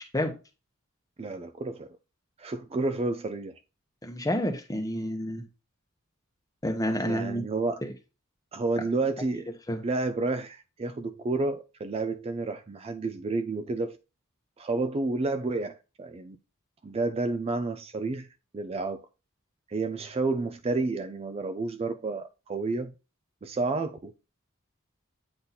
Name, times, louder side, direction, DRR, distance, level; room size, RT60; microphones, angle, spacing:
voice 1, 1.2-1.9 2.4-3.6 7.0-7.8 8.5-9.5 9.8-14.0 14.6-16.4 16.8-18.3 18.5-19.1 19.7-22.9 23.4-24.1, right 3 dB, 30° right, 0.4 m, -30 dB
voice 2, 4.0-5.4 6.6-7.4 9.7-9.8, equal, 15° left, 1.0 m, -29 dB
8.5 x 2.9 x 3.9 m
head